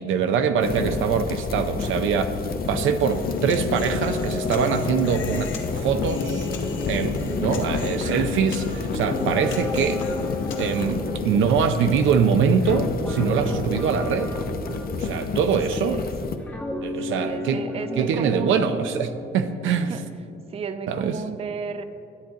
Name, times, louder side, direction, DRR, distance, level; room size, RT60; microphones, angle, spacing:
voice 1, 0.0-2.3 2.7-5.5 5.8-6.5 6.9-10.0 10.6-14.3 14.9-16.0 16.8-17.6 18.0-20.0 20.9-21.2, right 6 dB, 80° right, 9 dB, 0.6 m, -23 dB
sound 1, 0.6-16.4, left 4 dB, 50° left, 0.7 m, -30 dB
Human voice, 3.0-11.0, left 5 dB, 75° left, 1.0 m, -31 dB
Guitar, 8.8-16.0 16.5-20.2, left 1 dB, 10° left, 0.9 m, -34 dB
voice 2, 15.2-16.1 17.1-18.9 19.9-20.0 20.5-21.8, right 5 dB, 30° right, 11 dB, 0.4 m, -34 dB
10.5 x 7.8 x 3.8 m, 2.5 s
cardioid pair, 90°, 20 cm